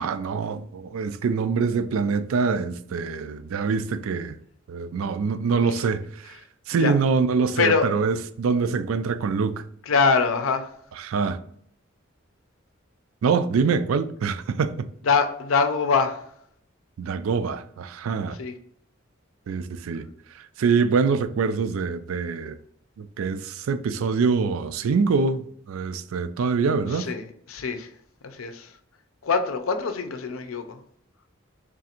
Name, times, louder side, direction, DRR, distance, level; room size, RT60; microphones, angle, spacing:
voice 1, 0.0-4.4 4.7-6.4 6.7-9.6 11.0-11.4 13.2-14.9 17.0-18.4 19.5-20.1 20.3-22.6 23.0-27.1, right 5 dB, 80° right, 0.4 m, -25 dB
voice 2, 7.6-7.9 9.9-10.7 15.1-16.2 18.4-18.5 26.9-27.2 27.5-27.9 28.2-28.7 29.2-30.8, left 5 dB, 85° left, 0.6 m, -23 dB
3.6 x 2.5 x 4.2 m
head